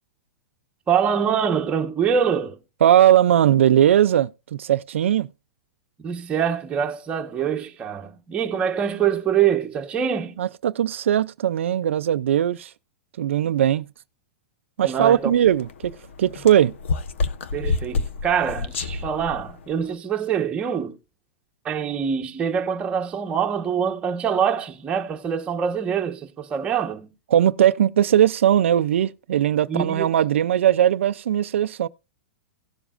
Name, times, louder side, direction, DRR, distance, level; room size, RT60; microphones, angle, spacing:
voice 1, 0.9-2.6 6.0-10.4 14.8-15.3 17.5-21.0 21.6-27.1 29.7-30.1, right 7 dB, 15° right, 1.2 m, -24 dB
voice 2, 2.8-5.3 10.4-12.7 13.2-13.8 14.8-16.7 27.3-31.9, right 11 dB, 85° right, 0.4 m, -19 dB
sound 1, 15.0-19.9, left 4 dB, 85° left, 1.0 m, -29 dB
17.0 x 7.1 x 2.5 m
supercardioid pair, 150°, 7 cm